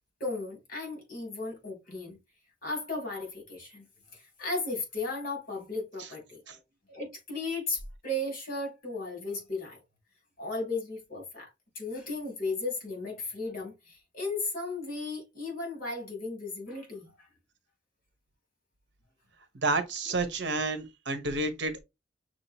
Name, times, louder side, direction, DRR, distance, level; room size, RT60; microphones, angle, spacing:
voice 1, 0.2-2.2 2.6-3.8 4.1-6.4 6.9-9.8 10.4-11.5 11.7-17.3, left 2 dB, 50° left, 2.9 m, -35 dB
voice 2, 19.6-21.8, right 3 dB, 70° right, 1.0 m, -30 dB
6.1 x 2.8 x 2.8 m
head